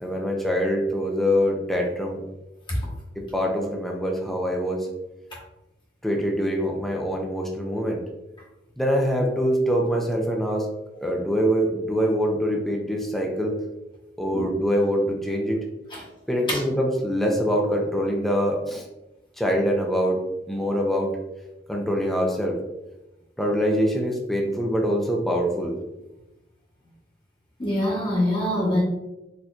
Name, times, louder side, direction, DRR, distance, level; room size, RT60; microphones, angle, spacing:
voice 1, 0.0-2.2 3.2-4.9 6.0-8.0 8.8-10.7 11.0-13.6 14.2-15.6 16.3-18.9 19.4-20.2 20.5-21.1 21.7-22.6 23.4-25.7, equal, ahead, -1 dB, 0.4 m, -24 dB
voice 2, 27.6-28.8, left 1 dB, 30° left, -5 dB, 1.1 m, -23 dB
4.2 x 2.6 x 2.3 m, 0.97 s
head